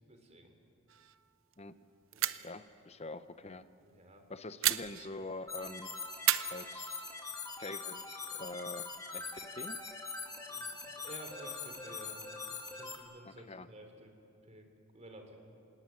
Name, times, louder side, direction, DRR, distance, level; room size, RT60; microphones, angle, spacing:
voice 1, 0.1-0.5 2.1-2.3 3.8-4.2 10.5-14.1 14.4-14.7 14.9-15.4, right 1 dB, 35° right, 4 dB, 3.4 m, -52 dB
sound 1, 0.9-1.3 1.5-1.6 2.1-2.6 4.6-5.5 6.2-7.4, right 13 dB, 80° right, 0.7 m, -34 dB
voice 2, 2.4-3.6 4.3-5.9 6.5-7.1 7.6-9.8 13.3-13.7, left 2 dB, 30° left, 12 dB, 0.8 m, -45 dB
sound 2, 5.5-13.0, left 4 dB, 15° left, 2.1 m, -43 dB
26.5 x 18.5 x 9.5 m, 2.7 s
head